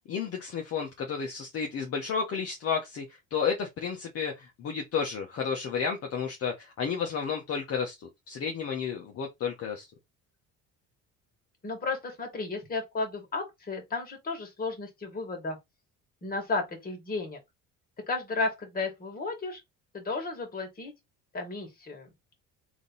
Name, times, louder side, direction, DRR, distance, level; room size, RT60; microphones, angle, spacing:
voice 1, 0.1-3.0 3.3-8.0 8.3-9.9, left 6 dB, 45° left, 1.1 m, -32 dB
voice 2, 11.6-15.6 16.2-17.4 18.1-19.6 19.9-20.9 21.3-22.1, left 3 dB, 30° left, 2.1 m, -33 dB
3.6 x 3.0 x 4.0 m
cardioid pair, 130°, 32 cm